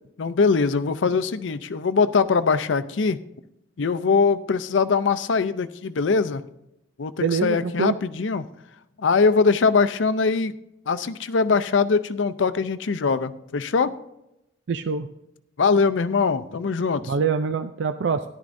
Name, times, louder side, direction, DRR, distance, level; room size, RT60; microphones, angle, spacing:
voice 1, 0.2-3.2 3.8-6.4 7.0-8.5 9.0-10.5 10.9-13.9 15.6-17.1, left 4 dB, 90° left, 13 dB, 0.5 m, -22 dB
voice 2, 7.2-8.0 14.7-15.1 17.1-18.2, right 5 dB, 75° right, 9 dB, 0.4 m, -24 dB
14.0 x 11.0 x 2.6 m, 0.85 s
head